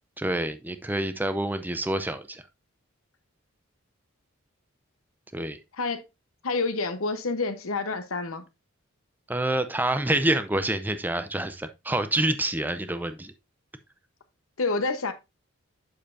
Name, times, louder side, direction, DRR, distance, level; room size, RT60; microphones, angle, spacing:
voice 1, 0.2-2.4 5.3-5.6 9.3-13.3, right 1 dB, 10° right, 0.5 m, -27 dB
voice 2, 6.4-8.4 14.6-15.1, left 3 dB, 80° left, 1.0 m, -28 dB
7.6 x 6.6 x 2.6 m
head